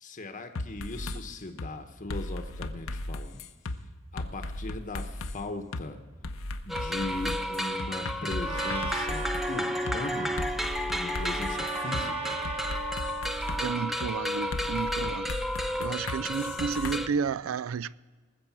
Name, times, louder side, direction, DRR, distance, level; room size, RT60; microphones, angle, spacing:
voice 1, 0.0-3.5 4.1-6.0 6.7-10.3 10.9-12.4, left 2 dB, 40° left, 1.0 m, -38 dB
sound 1, 0.6-1.2 1.6-1.7 2.1-3.8 4.2-5.4 5.7-5.8 6.2-9.5 9.9-10.0 10.4-12.0 12.4-13.6 14.0-14.1 14.5-17.0, left 2 dB, 80° left, 0.8 m, -36 dB
sound 2, 6.7-17.1, left 1 dB, ahead, 0.6 m, -32 dB
Trumpet, 8.4-13.9, right 4 dB, 30° right, 1.1 m, -37 dB
voice 2, 13.6-15.3 15.8-18.0, right 6 dB, 75° right, 0.4 m, -32 dB
19.5 x 7.7 x 6.0 m
head